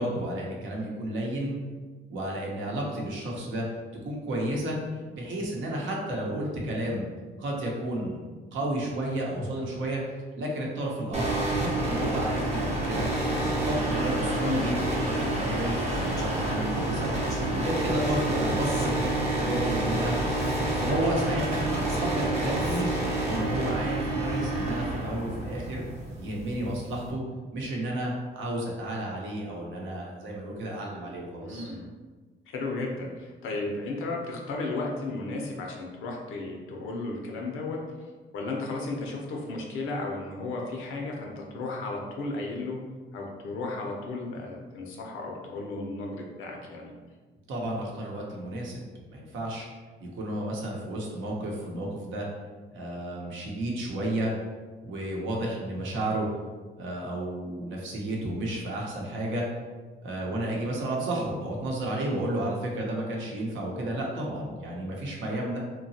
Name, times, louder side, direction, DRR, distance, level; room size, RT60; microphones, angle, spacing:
voice 1, 0.0-1.5 2.1-3.7 4.0-4.8 5.1-7.1 7.4-8.2 8.5-10.0 10.4-13.1 13.4-17.1 17.5-20.2 20.8-22.9 23.2-25.8 26.2-27.2 27.5-31.7 47.5-48.8 49.1-49.7 50.0-52.3 52.7-54.3 54.8-56.3 56.8-59.5 60.0-65.6, right 1 dB, 75° right, -2 dB, 0.8 m, -32 dB
sound 1, 11.1-27.1, right 1 dB, 35° right, 0.7 m, -28 dB
voice 2, 13.9-14.8 24.3-24.6 31.4-31.9 32.5-37.8 38.3-42.8 43.1-46.9, left 2 dB, 85° left, -1 dB, 0.6 m, -34 dB
Speech, 15.9-17.4 18.0-19.5 20.3-23.1, left 2 dB, 20° left, 0.5 m, -48 dB
2.8 x 2.2 x 2.7 m, 1.4 s
cardioid pair, 90°, 20 cm